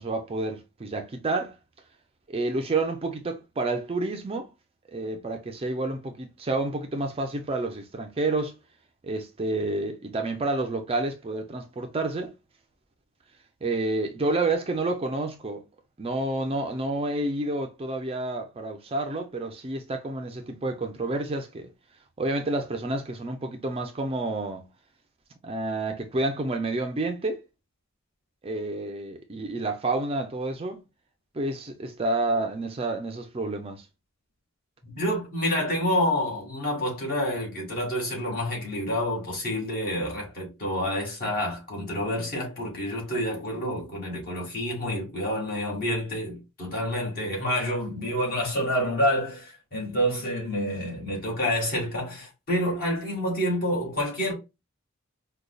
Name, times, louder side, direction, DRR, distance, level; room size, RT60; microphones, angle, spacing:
voice 1, 0.0-1.5 2.3-4.5 4.9-8.5 9.0-12.3 13.6-15.6 16.0-21.7 22.2-24.7 25.4-27.4 28.4-30.8 31.3-33.9, right 2 dB, 30° right, 0.4 m, -29 dB
voice 2, 34.8-54.3, equal, 45° left, 1.9 m, -28 dB
5.0 x 2.3 x 2.2 m
head